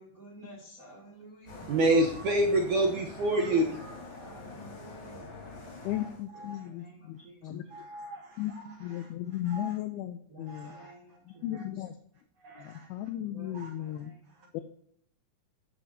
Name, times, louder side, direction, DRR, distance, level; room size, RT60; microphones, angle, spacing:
voice 1, 0.0-1.7 3.2-3.7 4.1-5.3 6.3-7.6 10.3-11.7 13.2-14.6, right 1 dB, 30° right, -1 dB, 1.8 m, -52 dB
sound 1, 1.5-6.2, left 3 dB, 35° left, 2.3 m, -45 dB
voice 2, 1.7-3.9 6.5-6.6 7.7-8.4 9.5-9.7 10.5-10.9 12.4-12.9 13.5-13.7, right 1 dB, 80° right, 1 dB, 1.8 m, -28 dB
voice 3, 5.8-7.7 8.4-8.5 8.8-10.7 11.3-12.0 12.6-14.1 14.5-14.6, left 13 dB, 80° left, 10 dB, 2.3 m, -36 dB
13.5 x 9.9 x 2.8 m, 0.68 s
omnidirectional pair, 4.9 m